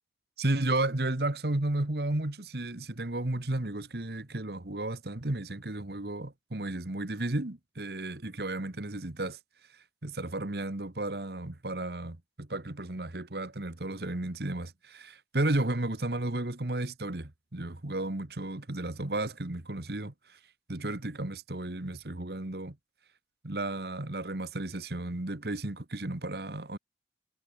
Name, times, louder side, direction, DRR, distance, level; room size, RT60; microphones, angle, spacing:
voice 1, 0.4-9.4 10.0-20.4 20.7-22.8 23.4-26.8, right 2 dB, 65° right, 1.6 m, -33 dB
head